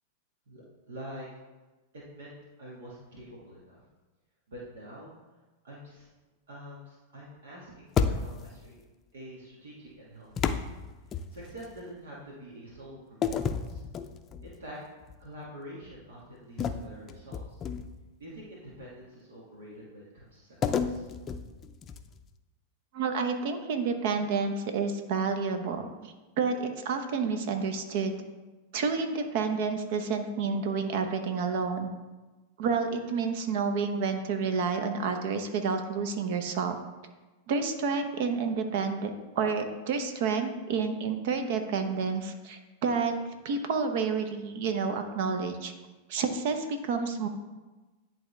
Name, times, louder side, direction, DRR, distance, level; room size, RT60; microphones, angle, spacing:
voice 1, 0.5-1.3 1.9-2.3 2.6-3.8 4.5-5.1 5.6-6.1 6.5-8.8 9.1-10.7 11.1-13.8 14.4-14.8 15.2-17.6 18.2-21.1, equal, 80° right, -5 dB, 1.6 m, -46 dB
sound 1, 7.9-8.6 10.4-11.7 13.2-14.5 15.0-15.3 16.6-18.1 20.6-22.3, left 6 dB, 30° left, 0.5 m, -31 dB
voice 2, 22.9-28.1 28.7-31.9 32.6-36.7 37.5-39.1 39.4-43.1 43.4-45.7 46.1-47.3, right 5 dB, 60° right, 6 dB, 0.9 m, -29 dB
10.5 x 3.7 x 3.3 m, 1.2 s
hypercardioid pair, 105°, 0 cm